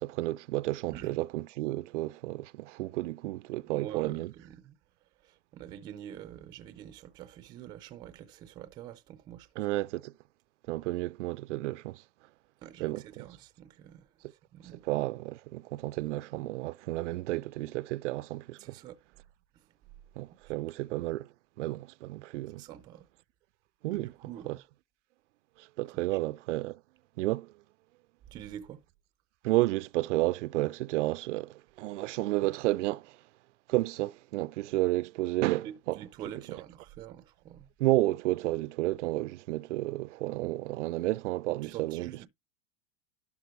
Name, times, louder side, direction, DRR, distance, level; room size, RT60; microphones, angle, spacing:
voice 1, 0.0-4.3 9.6-10.1 10.7-12.0 12.8-13.3 14.9-18.8 20.2-21.3 21.6-22.6 23.8-24.1 24.5-24.6 25.6-26.8 27.2-27.5 29.4-33.2 33.7-36.0 37.8-42.3, right 18 dB, 80° right, 0.5 m, -31 dB
voice 2, 3.7-4.8 5.2-9.7 12.6-15.0 18.6-19.0 19.5-19.7 20.4-20.5 22.6-23.1 23.9-24.6 25.9-26.2 28.3-28.8 35.6-37.7 41.5-42.3, right 11 dB, 10° right, 0.4 m, -46 dB
12.0 x 4.0 x 4.4 m
supercardioid pair, 175°, 36 cm